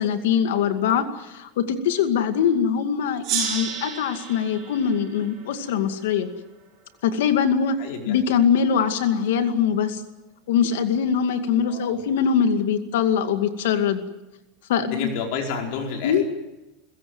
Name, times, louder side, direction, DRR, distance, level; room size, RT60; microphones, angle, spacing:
voice 1, 0.0-6.3 7.0-7.7 8.1-10.0 10.5-14.0 14.7-15.1 16.0-16.2, left 7 dB, 85° left, 8 dB, 2.2 m, -22 dB
Gong, 3.2-6.4, right 7 dB, 40° right, 7.8 m, -32 dB
voice 2, 7.8-8.1 11.7-12.0 14.8-16.2, left 5 dB, 60° left, 2 dB, 4.9 m, -30 dB
30.0 x 16.0 x 8.0 m, 1.1 s
supercardioid pair, 155°, 0 cm